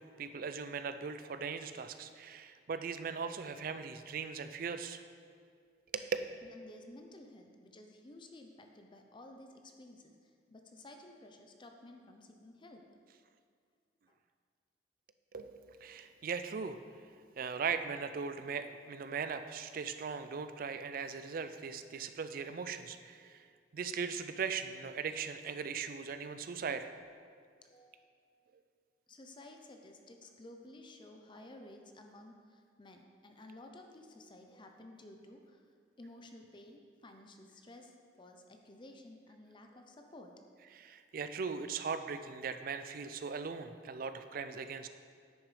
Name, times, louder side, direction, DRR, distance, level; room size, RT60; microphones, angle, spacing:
voice 1, 0.0-5.0 5.9-6.1 15.3-16.8 17.4-23.5 23.7-26.9 40.7-44.9, right 5 dB, 55° right, 10 dB, 0.4 m, -39 dB
voice 2, 6.4-12.8 14.1-14.2 27.6-28.1 29.1-35.6 36.0-40.3, left 1 dB, 25° left, 4 dB, 0.5 m, -54 dB
9.7 x 6.4 x 3.2 m, 2.1 s
head